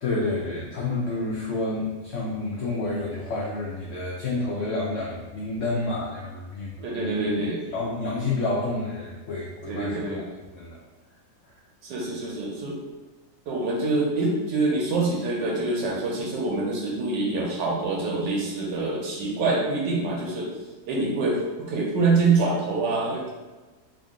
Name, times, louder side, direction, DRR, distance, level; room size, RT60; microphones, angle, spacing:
voice 1, 0.0-7.3 7.7-10.2 10.5-10.8, left 2 dB, 70° left, -4 dB, 0.7 m, -29 dB
voice 2, 6.8-7.6 9.7-10.2 11.8-12.8 13.5-20.5 20.9-21.4 21.7-23.3, right 3 dB, 85° right, -3 dB, 1.4 m, -25 dB
3.6 x 2.2 x 3.6 m, 1.2 s
omnidirectional pair, 1.9 m